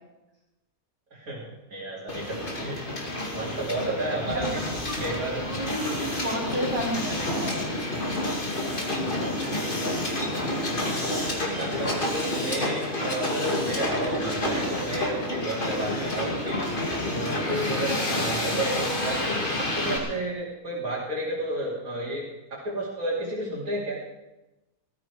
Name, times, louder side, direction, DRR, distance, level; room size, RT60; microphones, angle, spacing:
voice 1, 1.1-4.7 5.0-5.4 8.7-8.8 9.5-9.9 11.0-24.0, right 1 dB, 70° right, -8 dB, 3.4 m, -32 dB
Hiss, 2.1-20.0, left 1 dB, 35° left, 2.5 m, -29 dB
voice 2, 4.2-4.9 5.3-7.6 13.5-13.6, equal, 40° right, -2 dB, 5.6 m, -32 dB
18.0 x 14.0 x 4.9 m, 1.0 s
omnidirectional pair, 1.6 m